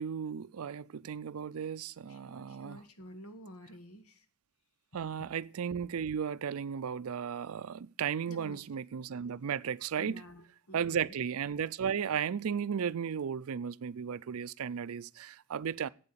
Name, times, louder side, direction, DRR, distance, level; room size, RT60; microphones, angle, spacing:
voice 1, 0.0-2.8 4.9-10.3 10.7-15.9, right 7 dB, 70° right, 0.4 m, -35 dB
voice 2, 2.1-4.1 8.3-8.6 10.0-11.1, equal, 70° left, 1.5 m, -50 dB
8.5 x 7.8 x 7.3 m
head